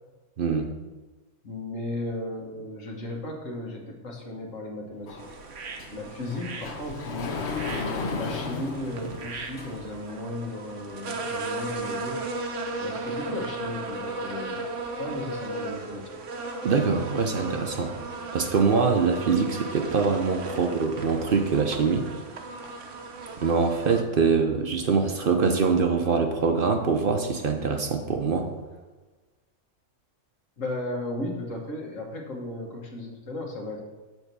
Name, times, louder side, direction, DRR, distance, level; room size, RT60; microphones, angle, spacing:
voice 1, 0.4-0.7 16.6-17.9 18.3-22.1 23.4-28.5, right 5 dB, 50° right, 5 dB, 0.8 m, -24 dB
voice 2, 1.4-5.3 5.9-7.6 8.1-12.2 12.8-14.6 15.0-16.2 20.5-20.6 30.6-33.9, left 1 dB, 80° left, 0 dB, 1.7 m, -35 dB
Sliding door, 5.1-10.0, left 4 dB, 60° left, 1.1 m, -35 dB
sound 1, 5.2-24.0, right 2 dB, 75° right, 1.2 m, -36 dB
7.2 x 4.5 x 6.7 m, 1.3 s
omnidirectional pair, 1.3 m